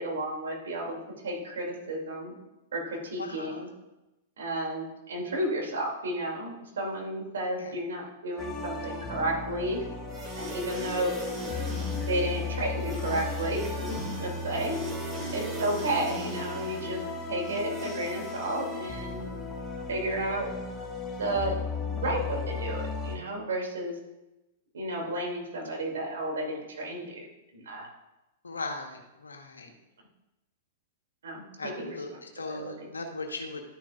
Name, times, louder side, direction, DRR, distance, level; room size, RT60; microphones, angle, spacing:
voice 1, 0.0-2.4 2.7-3.7 4.4-9.8 10.4-11.1 12.1-14.8 15.3-17.0 17.3-19.3 19.9-20.5 21.2-21.6 21.9-24.0 24.7-27.3 27.5-27.9 31.2-32.2 32.5-32.9, right 1 dB, 75° right, -1 dB, 2.6 m, -32 dB
voice 2, 3.2-3.7 7.6-7.7 28.4-29.7 31.6-33.6, left 3 dB, 85° left, 4 dB, 1.2 m, -38 dB
sound 1, 8.4-23.2, left 4 dB, 15° left, 1.5 m, -36 dB
sound 2, 10.1-19.2, right 1 dB, 25° right, 2.3 m, -40 dB
12.5 x 7.2 x 2.4 m, 0.99 s
hypercardioid pair, 105°, 0 cm